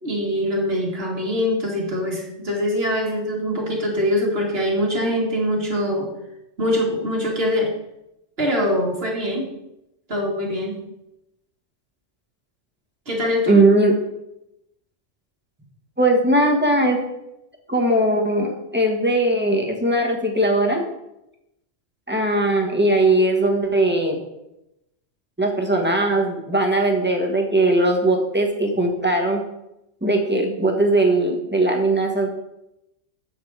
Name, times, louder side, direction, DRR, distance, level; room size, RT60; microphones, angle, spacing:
voice 1, 0.0-6.1 6.6-7.7 8.4-9.5 10.1-10.8 13.1-13.6, left 1 dB, 50° right, -1 dB, 2.2 m, -23 dB
voice 2, 13.5-13.9 16.0-17.0 17.7-20.9 22.1-24.2 25.4-29.4 30.0-32.3, right 1 dB, 10° right, 1 dB, 1.3 m, -19 dB
8.3 x 6.8 x 4.7 m, 0.87 s
omnidirectional pair, 1.3 m